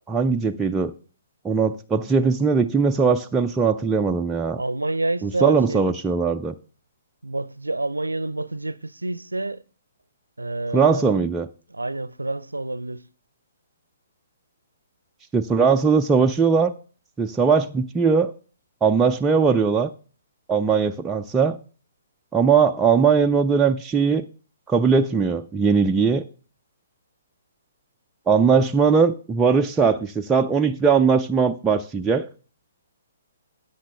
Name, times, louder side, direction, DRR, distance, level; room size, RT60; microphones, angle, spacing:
voice 1, 0.1-0.9 1.4-4.6 5.2-6.5 10.7-11.5 15.3-16.7 17.2-18.3 18.8-19.9 20.5-21.6 22.3-24.3 24.7-26.2 28.3-32.3, right 5 dB, 10° right, 0.4 m, -20 dB
voice 2, 4.6-6.0 7.2-9.6 10.4-11.0 11.7-13.1, right 2 dB, 80° right, 0.6 m, -28 dB
13.0 x 8.7 x 3.4 m
figure-of-eight pair, 125°, 0 cm